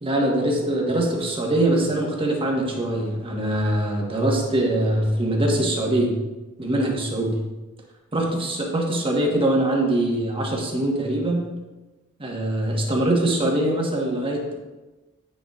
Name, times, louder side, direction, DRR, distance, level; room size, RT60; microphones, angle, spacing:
voice 1, 0.0-6.1 6.6-7.3 8.1-11.4 12.2-14.5, right 1 dB, 25° right, -1 dB, 1.2 m, -23 dB
9.1 x 6.4 x 2.4 m, 1.1 s
head